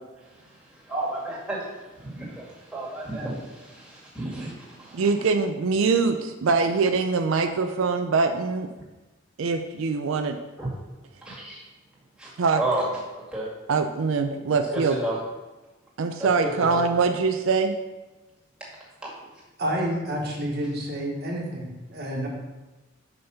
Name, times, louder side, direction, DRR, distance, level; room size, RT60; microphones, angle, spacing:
voice 1, 0.2-1.6 1.9-5.1 11.2-11.6 12.2-12.3 12.6-12.9 13.1-13.5 14.7-15.2 16.4-16.8, right 2 dB, 5° right, -7 dB, 2.1 m, -32 dB
voice 2, 4.9-8.7 9.4-10.3 12.4-12.6 13.7-15.0 16.0-17.8, right 4 dB, 80° right, 7 dB, 0.4 m, -23 dB
voice 3, 19.6-22.3, equal, 55° right, -1 dB, 1.4 m, -29 dB
5.5 x 5.3 x 5.6 m, 1.1 s
head